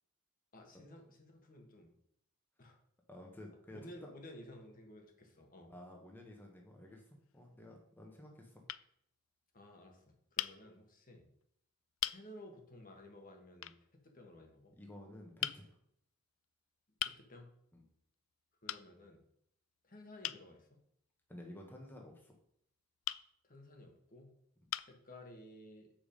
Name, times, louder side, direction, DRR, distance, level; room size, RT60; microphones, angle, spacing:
voice 1, 0.5-1.9 2.6-2.8 3.7-5.7 9.5-11.3 12.1-14.8 17.0-17.5 18.6-19.2 19.8-20.8 23.4-24.3 24.8-25.9, left 1 dB, 45° left, 3 dB, 1.4 m, -55 dB
voice 2, 3.1-4.1 5.7-8.6 14.8-15.8 17.7-17.8 21.3-22.4, left 1 dB, 10° left, 0 dB, 1.1 m, -52 dB
sound 1, 6.9-7.5 8.2-8.4 8.7-8.9 10.4-10.6 11.4-11.5 12.0-12.2 13.6-13.8 15.4-15.6 17.0-17.2 18.7-18.9 20.2-20.4 23.0-23.2 24.1-24.2 24.7-25.0, left 14 dB, 80° left, 0.3 m, -39 dB
7.0 x 5.2 x 5.1 m, 0.71 s
head